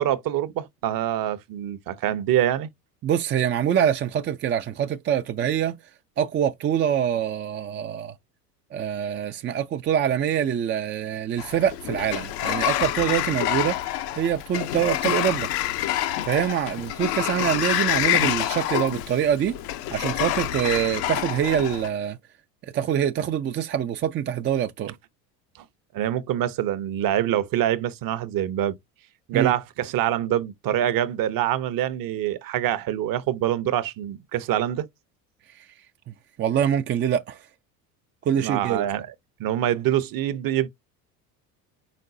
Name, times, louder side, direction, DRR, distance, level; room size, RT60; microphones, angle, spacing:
voice 1, 0.0-2.7 25.9-28.8 29.3-34.9 38.4-39.1 39.4-40.7, right 12 dB, 45° right, 0.8 m, -25 dB
voice 2, 3.0-5.8 6.2-8.1 8.7-13.8 14.2-15.5 16.3-19.6 19.9-22.2 22.7-24.9 29.3-29.5 35.6-35.7 36.1-37.4 38.2-38.9, right 9 dB, 25° right, 0.4 m, -25 dB
Sliding door, 11.4-21.9, left 13 dB, 70° left, 0.8 m, -27 dB
5.2 x 3.7 x 2.7 m
hypercardioid pair, 75°, 48 cm